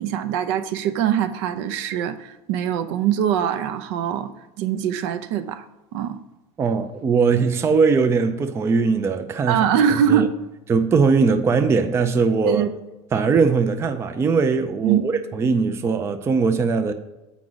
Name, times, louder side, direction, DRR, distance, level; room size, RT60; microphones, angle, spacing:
voice 1, 0.0-4.3 4.6-5.6 5.9-6.2 9.5-10.3 12.4-12.7 14.8-15.0, right 9 dB, 70° right, 0.6 m, -22 dB
voice 2, 6.6-9.7 10.1-10.3 10.7-12.7 13.1-16.9, right 5 dB, 20° right, 0.4 m, -20 dB
7.5 x 4.8 x 3.9 m
supercardioid pair, 140°, 15 cm